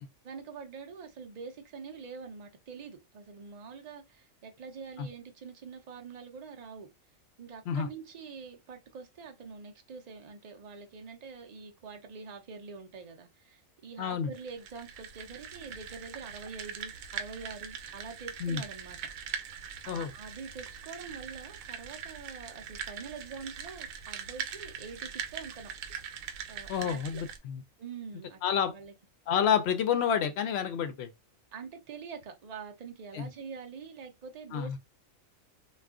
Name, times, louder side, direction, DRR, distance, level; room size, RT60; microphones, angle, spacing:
voice 1, 0.2-6.9 7.4-19.0 19.8-25.7 26.5-27.2 27.8-28.9 31.5-34.8, right 5 dB, 60° right, 0.4 m, -45 dB
voice 2, 14.0-14.3 18.4-18.6 19.9-20.1 26.7-27.6 28.4-28.7 29.3-31.1 33.1-33.3 34.5-34.8, left 8 dB, 65° left, 0.7 m, -29 dB
sound 1, 14.3-27.4, right 7 dB, 80° right, 1.0 m, -42 dB
2.4 x 2.3 x 3.5 m
omnidirectional pair, 1.4 m